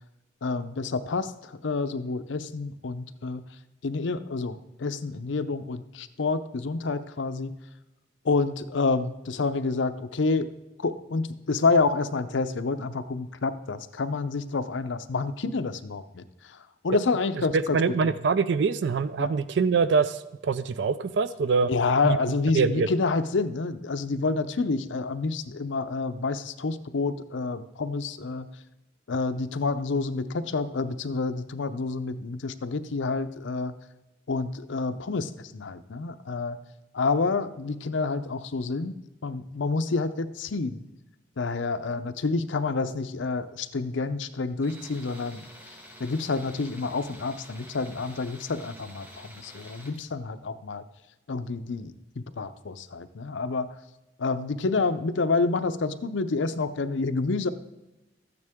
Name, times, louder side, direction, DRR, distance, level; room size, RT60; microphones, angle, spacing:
voice 1, 0.4-3.4 3.8-7.5 8.2-10.5 10.8-16.2 16.8-17.8 18.0-18.1 19.2-19.3 21.7-28.5 29.1-33.7 34.3-36.6 36.9-38.9 39.2-40.8 41.4-45.5 46.0-50.8 51.3-53.7 54.2-57.5, left 3 dB, 75° left, 10 dB, 0.6 m, -28 dB
voice 2, 17.5-21.7 22.0-22.2 22.5-22.9, right 5 dB, 60° right, 14 dB, 0.4 m, -24 dB
Tools, 44.6-50.0, equal, 10° right, 1.3 m, -48 dB
13.5 x 9.4 x 3.6 m, 0.99 s
head